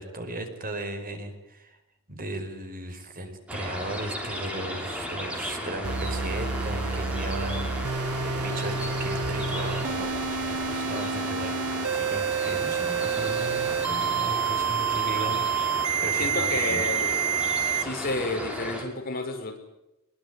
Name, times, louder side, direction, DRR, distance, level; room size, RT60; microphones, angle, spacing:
voice 1, 0.0-1.8 2.1-15.5 16.0-16.8, right 1 dB, 40° right, 7 dB, 5.1 m, -36 dB
sound 1, 3.5-18.8, equal, 5° right, 6.7 m, -35 dB
sound 2, 5.8-17.8, right 6 dB, 75° right, 1.2 m, -28 dB
voice 2, 16.2-17.2 17.8-19.6, left 2 dB, 40° left, 3 dB, 6.0 m, -31 dB
24.0 x 22.5 x 9.5 m, 0.90 s
head